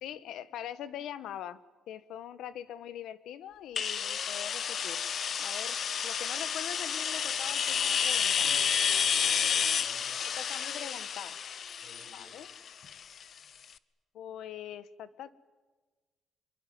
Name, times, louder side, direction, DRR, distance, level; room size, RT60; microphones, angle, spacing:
voice 1, 0.0-1.6 1.9-5.0 5.4-8.5 10.2-11.4 12.1-12.5 14.1-15.3, left 10 dB, 80° left, 15 dB, 1.5 m, -42 dB
sound 1, 3.8-13.4, left 7 dB, 50° left, 0.9 m, -30 dB
voice 2, 8.2-10.2 11.8-12.3, left 2 dB, 65° left, 0 dB, 7.8 m, -57 dB
26.0 x 23.0 x 9.5 m, 1.3 s
cardioid pair, 140°, 0 cm